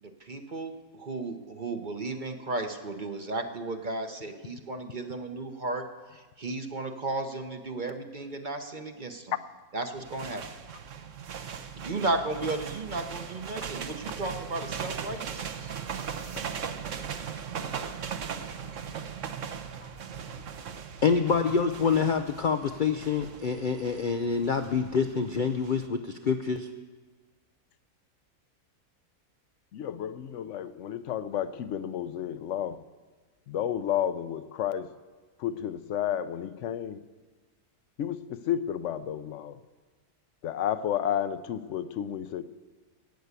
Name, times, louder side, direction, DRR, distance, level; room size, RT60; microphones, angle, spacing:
voice 1, 0.0-5.8 6.1-9.3 9.7-10.4 11.7-15.7, right 2 dB, 40° right, 6 dB, 0.8 m, -34 dB
sound 1, 9.9-25.9, right 7 dB, 60° right, 1.1 m, -39 dB
voice 2, 21.0-26.7, left 5 dB, 85° left, 8 dB, 0.4 m, -26 dB
voice 3, 29.7-32.8 33.5-34.9 35.4-37.0 38.0-39.6 40.4-42.4, left 10 dB, 65° left, 13 dB, 0.8 m, -31 dB
13.0 x 9.3 x 8.2 m, 1.4 s
omnidirectional pair, 1.6 m